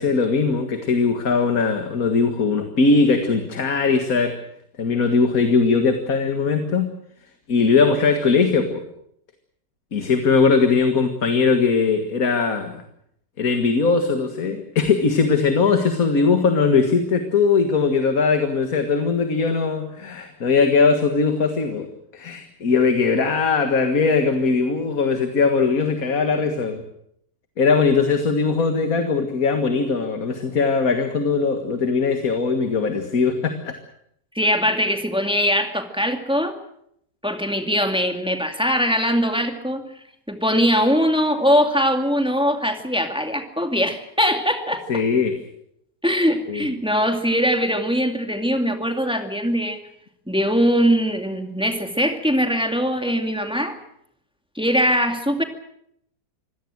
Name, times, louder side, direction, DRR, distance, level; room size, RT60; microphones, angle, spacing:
voice 1, 0.0-4.4 4.8-6.9 7.5-8.8 9.9-12.8 13.4-26.8 27.6-33.8 44.9-45.4 46.5-46.7, left 4 dB, 55° left, 6 dB, 2.1 m, -20 dB
voice 2, 34.3-36.5 37.2-39.9 40.3-44.9 46.0-49.8 50.3-53.8 54.6-55.4, equal, 5° right, 5 dB, 2.3 m, -21 dB
26.0 x 17.0 x 7.8 m, 0.72 s
omnidirectional pair, 1.8 m